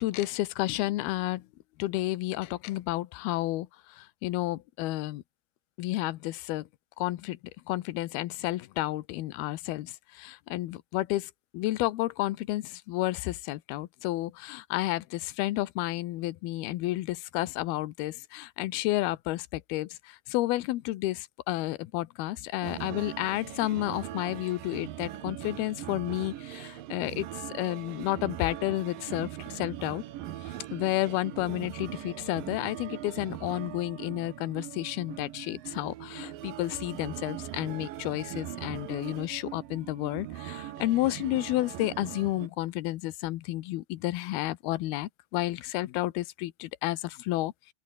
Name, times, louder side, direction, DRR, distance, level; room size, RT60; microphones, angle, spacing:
voice 1, 0.0-1.4 1.8-3.7 4.0-5.2 5.8-6.7 7.0-7.4 7.7-27.3 27.5-30.0 30.5-47.5, left 17 dB, 80° left, 2.9 m, -31 dB
sound 1, 22.6-42.5, right 13 dB, 70° right, 2.7 m, -41 dB
open air
omnidirectional pair, 4.4 m